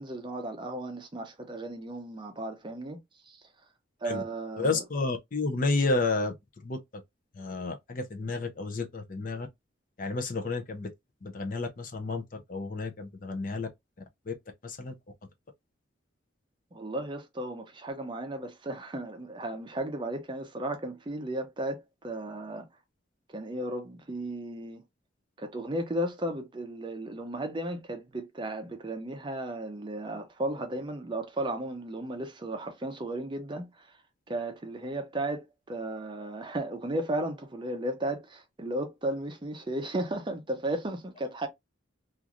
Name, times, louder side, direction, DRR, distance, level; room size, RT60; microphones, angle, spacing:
voice 1, 0.0-3.0 3.3-3.4 4.0-4.8 16.7-22.7 23.3-24.8 25.4-33.9 34.3-41.5, right 1 dB, 25° right, 0.5 m, -35 dB
voice 2, 4.6-6.3 6.6-7.0 7.4-9.5 10.0-10.9 11.2-12.2 12.5-13.7 14.3-14.4 14.6-15.0, left 3 dB, 45° left, 0.5 m, -31 dB
2.9 x 2.5 x 2.4 m
head